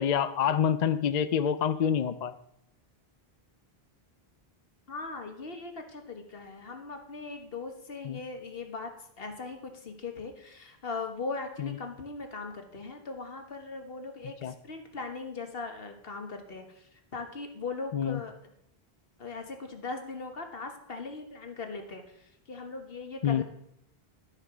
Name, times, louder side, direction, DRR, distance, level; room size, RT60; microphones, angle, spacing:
voice 1, 0.0-2.3 8.1-8.2 14.4-14.5 17.9-18.2 23.2-23.4, left 8 dB, 55° left, 13 dB, 0.6 m, -26 dB
voice 2, 4.9-18.5 19.2-23.4, left 4 dB, 70° left, 5 dB, 1.7 m, -39 dB
12.0 x 6.6 x 6.0 m, 0.76 s
omnidirectional pair, 1.0 m